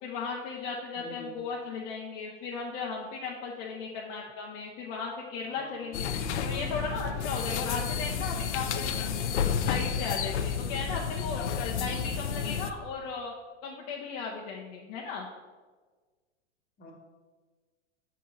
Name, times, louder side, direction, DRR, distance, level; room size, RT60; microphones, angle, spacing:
voice 1, 0.0-6.1 6.4-9.1 9.6-13.3 13.6-15.3, left 5 dB, 45° left, -2 dB, 0.9 m, -36 dB
voice 2, 0.9-1.3 5.4-6.0 16.8-16.9, left 2 dB, 25° left, 0 dB, 1.3 m, -48 dB
sound 1, 5.9-12.7, left 7 dB, 85° left, 0.6 m, -31 dB
7.4 x 3.9 x 4.1 m, 1.4 s
hypercardioid pair, 120°, 34 cm